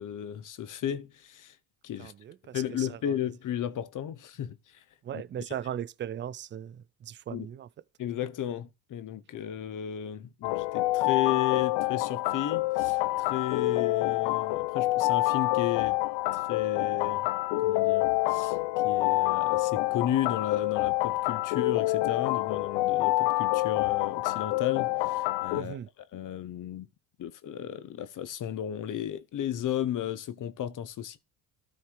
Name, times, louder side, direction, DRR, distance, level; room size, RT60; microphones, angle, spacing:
voice 1, 0.0-1.6 1.8-2.1 2.5-4.8 5.1-5.2 7.3-7.5 8.0-16.0 16.3-17.3 17.6-18.6 18.8-25.8 26.1-26.9 27.2-31.2, left 10 dB, 45° left, 1.1 m, -34 dB
voice 2, 2.0-3.2 5.0-7.7 25.6-25.9, right 10 dB, 25° right, 0.5 m, -38 dB
sound 1, 10.4-25.6, left 19 dB, 80° left, 0.7 m, -27 dB
13.0 x 4.4 x 4.8 m
cardioid pair, 115°, 43 cm